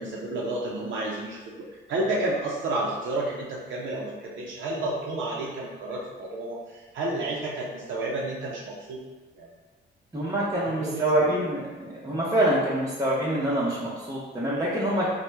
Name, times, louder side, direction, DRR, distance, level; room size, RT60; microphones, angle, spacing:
voice 1, 0.0-9.0 9.4-9.5 10.8-11.4, right 2 dB, 75° right, -4 dB, 0.5 m, -31 dB
voice 2, 10.1-15.1, right 1 dB, 15° right, -7 dB, 0.6 m, -26 dB
2.9 x 2.1 x 3.3 m, 1.2 s
cardioid pair, 90°, 20 cm